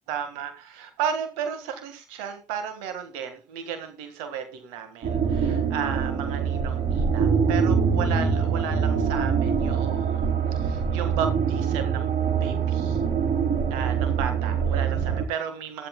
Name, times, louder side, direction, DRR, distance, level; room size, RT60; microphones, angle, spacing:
voice 1, 0.1-12.1 12.4-13.0 13.7-15.9, right 8 dB, 85° right, 8 dB, 1.7 m, -34 dB
sound 1, 5.0-15.3, right 6 dB, 60° right, 3.0 m, -24 dB
15.5 x 12.5 x 2.3 m, 0.30 s
hypercardioid pair, 45°, 17 cm